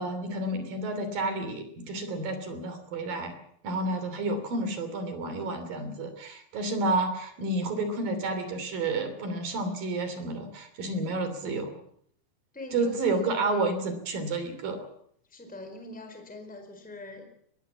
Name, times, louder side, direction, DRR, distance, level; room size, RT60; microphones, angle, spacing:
voice 1, 0.0-3.3 3.6-11.8 12.7-14.9, right 2 dB, 55° right, 9 dB, 4.5 m, -30 dB
voice 2, 12.5-13.7 15.3-17.3, left 2 dB, ahead, 6 dB, 3.9 m, -43 dB
23.0 x 20.5 x 7.2 m, 0.67 s
omnidirectional pair, 4.9 m